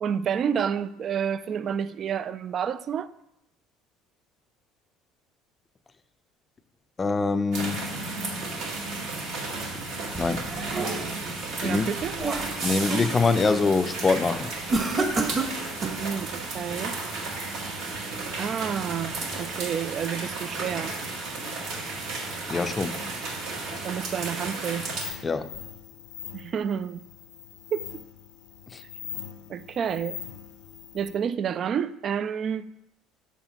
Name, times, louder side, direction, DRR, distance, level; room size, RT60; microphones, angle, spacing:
voice 1, 0.0-3.1 11.6-12.1 16.0-17.0 18.4-21.0 23.8-24.9 26.3-27.0 27.7-27.9 29.5-30.2 30.9-32.7, right 8 dB, 50° right, 0.3 m, -29 dB
voice 2, 7.0-7.9 10.1-10.4 11.6-11.9 12.6-14.5 22.5-23.0 25.2-25.5 28.7-28.8, left 4 dB, 30° left, 0.5 m, -24 dB
sound 1, 7.5-25.1, right 3 dB, 75° right, 1.8 m, -33 dB
sound 2, 10.2-11.3 11.8-13.1 13.5-13.8 14.7-16.1, right 3 dB, 30° right, 1.1 m, -30 dB
sound 3, 25.0-31.2, left 9 dB, 75° left, 0.5 m, -42 dB
7.2 x 6.7 x 2.9 m
hypercardioid pair, 75°, 0 cm